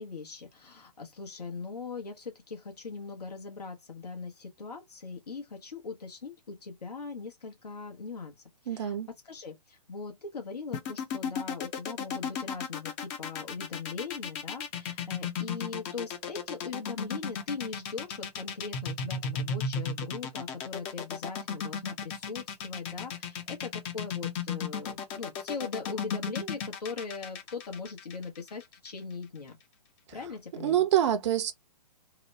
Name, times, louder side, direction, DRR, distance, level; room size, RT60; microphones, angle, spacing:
voice 1, 0.0-8.3 8.6-29.6 30.1-30.8, left 4 dB, 70° left, 1.0 m, -40 dB
voice 2, 8.7-9.1 30.6-31.5, right 11 dB, 45° right, 0.7 m, -26 dB
sound 1, 10.7-28.9, left 6 dB, 25° left, 0.6 m, -35 dB
2.9 x 2.1 x 3.1 m
figure-of-eight pair, 120°, 21 cm